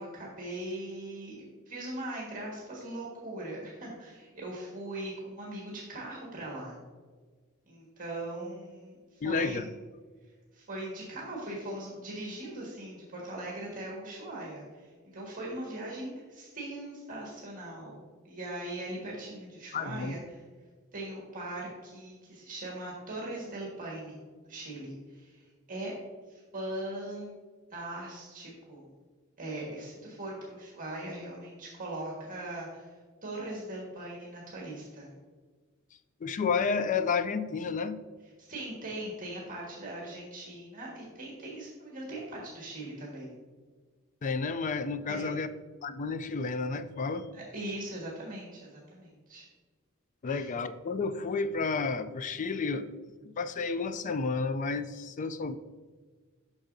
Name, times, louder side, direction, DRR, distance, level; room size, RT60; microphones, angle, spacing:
voice 1, 0.0-6.8 7.7-9.7 10.5-18.0 18.2-20.2 20.9-24.2 24.4-25.4 25.7-25.9 26.3-27.3 27.7-28.9 29.4-32.9 33.2-35.1 38.4-43.3 45.1-45.3 47.3-49.5 50.3-50.5, right 1 dB, 40° right, -4 dB, 1.5 m, -40 dB
voice 2, 9.2-9.6 19.7-20.2 36.2-38.0 44.2-45.5 45.8-47.3 50.2-52.9 53.2-55.6, left 4 dB, 35° left, 12 dB, 0.3 m, -31 dB
7.9 x 6.0 x 2.6 m, 1.4 s
head